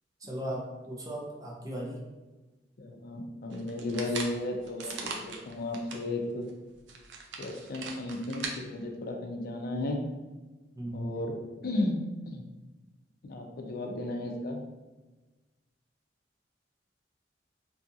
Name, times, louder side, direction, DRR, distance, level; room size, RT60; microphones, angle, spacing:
voice 1, 0.2-2.0 10.8-11.2, equal, 20° right, -2 dB, 0.5 m, -37 dB
voice 2, 2.8-6.5 7.4-10.0 10.9-12.4 13.2-14.6, left 2 dB, 55° left, 2 dB, 0.4 m, -34 dB
sound 1, 3.5-6.0 6.5-6.6 6.9-8.6, right 4 dB, 80° right, 0.4 m, -40 dB
2.7 x 2.4 x 2.7 m, 1.2 s
head